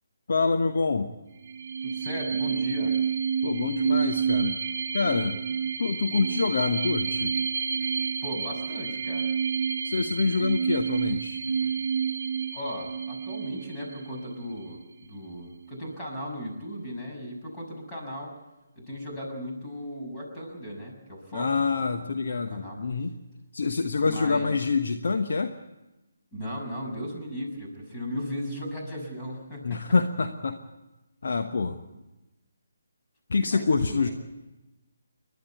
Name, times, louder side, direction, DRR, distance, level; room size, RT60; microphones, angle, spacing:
voice 1, 0.3-1.1 3.4-4.6 4.9-5.4 5.8-7.3 9.8-11.4 21.3-23.1 23.5-25.5 29.6-30.6 31.2-31.8 33.3-34.1, left 4 dB, 50° left, 5 dB, 1.1 m, -26 dB
sound 1, 1.4-14.8, right 6 dB, 45° right, 1.1 m, -29 dB
voice 2, 1.8-2.9 7.8-7.9 8.2-9.3 11.5-11.7 12.5-18.3 18.8-21.6 22.0-22.1 22.5-22.8 24.0-24.6 26.3-29.8 33.4-34.1, equal, 15° left, -1 dB, 6.3 m, -37 dB
29.5 x 12.0 x 8.3 m, 1.0 s
figure-of-eight pair, 145°, 0 cm